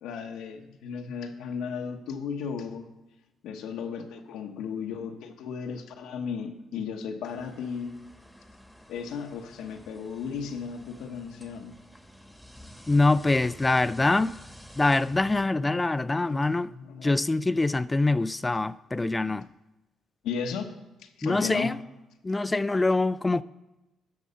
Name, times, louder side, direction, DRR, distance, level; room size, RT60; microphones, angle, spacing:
voice 1, 0.0-2.9 3.4-8.0 8.9-11.7 15.0-15.3 15.6-17.2 20.2-20.7 21.0-21.7, left 6 dB, 90° left, 1.0 m, -35 dB
sound 1, 7.2-15.5, equal, ahead, 1.1 m, -50 dB
voice 2, 12.9-14.4 14.8-16.7 17.0-19.5 21.2-21.8 22.2-23.4, left 2 dB, 20° left, 0.3 m, -24 dB
12.0 x 5.5 x 5.6 m
cardioid pair, 90°, 0 cm